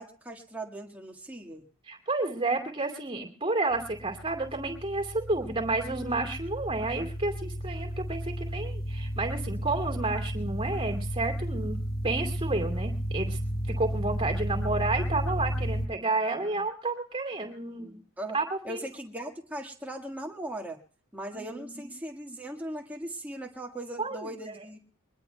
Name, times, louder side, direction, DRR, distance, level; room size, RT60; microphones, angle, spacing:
voice 1, 0.0-1.6 18.2-18.4 18.6-20.8 21.1-24.8, right 1 dB, 5° right, 1 dB, 1.6 m, -39 dB
voice 2, 1.9-13.4 13.7-18.0 18.3-18.8 21.3-21.9 24.0-24.3 24.6-24.7, right 2 dB, 25° right, 4 dB, 2.4 m, -31 dB
sound 1, 3.7-15.9, equal, 45° left, 0.9 m, -33 dB
22.5 x 20.5 x 2.3 m, 0.39 s
head